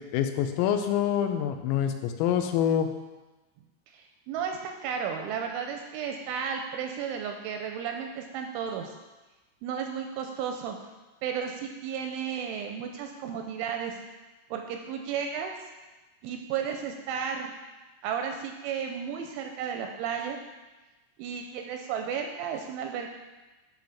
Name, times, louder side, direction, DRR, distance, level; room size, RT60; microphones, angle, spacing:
voice 1, 0.0-2.9, left 9 dB, 85° left, 7 dB, 3.4 m, -26 dB
voice 2, 3.9-8.9 9.6-10.8 11.2-14.0 14.5-15.5 16.2-17.5 18.0-20.4 21.2-23.1, right 7 dB, 85° right, 4 dB, 2.8 m, -33 dB
11.0 x 3.9 x 7.1 m, 1.1 s
omnidirectional pair, 5.9 m